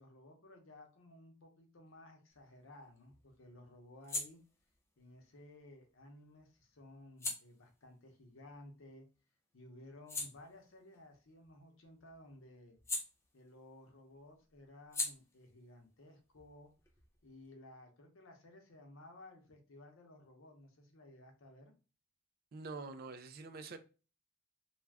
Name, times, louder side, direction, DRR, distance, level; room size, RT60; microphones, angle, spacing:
voice 1, 0.0-4.4 5.0-9.1 9.5-12.8 13.3-16.7 17.2-21.7, left 1 dB, 75° left, 0.7 m, -57 dB
sound 1, 2.3-9.2 9.6-13.8 14.1-17.5, left 2 dB, 15° left, 0.4 m, -46 dB
voice 2, 22.5-23.8, right 4 dB, 45° right, 0.4 m, -46 dB
2.4 x 2.2 x 3.3 m
head